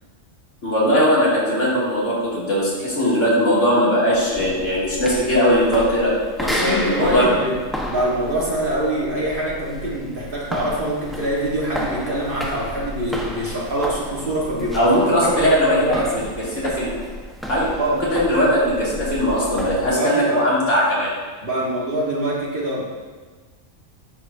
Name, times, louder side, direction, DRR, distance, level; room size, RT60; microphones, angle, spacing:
voice 1, 0.6-6.1 6.4-7.3 14.7-16.2 16.5-16.9 17.5-17.7 18.1-21.1, equal, 65° left, -8 dB, 3.0 m, -19 dB
sound 1, 4.1-19.9, equal, ahead, 0.9 m, -32 dB
voice 2, 6.4-7.6 7.9-15.2 15.4-16.3 17.8-18.0 19.8-20.4 21.4-22.9, right 1 dB, 45° right, -5 dB, 1.7 m, -24 dB
10.5 x 7.8 x 2.7 m, 1.4 s
omnidirectional pair, 1.3 m